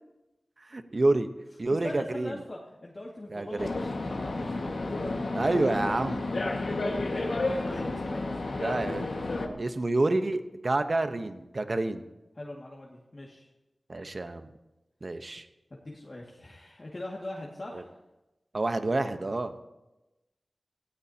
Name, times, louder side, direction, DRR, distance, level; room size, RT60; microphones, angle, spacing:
voice 1, 0.7-1.3 1.6-2.4 3.3-3.7 5.3-6.2 8.6-9.1 9.6-12.0 13.9-14.5 15.0-15.4 17.7-17.8 18.5-19.5, right 2 dB, 45° right, 8 dB, 1.0 m, -28 dB
voice 2, 1.8-4.5 6.4-8.3 12.3-13.5 15.7-17.9, left 1 dB, 40° left, -3 dB, 2.1 m, -41 dB
sound 1, 3.6-9.5, left 2 dB, 70° left, 1.8 m, -31 dB
18.0 x 16.5 x 2.9 m, 1.0 s
wide cardioid pair, 75°, 0 cm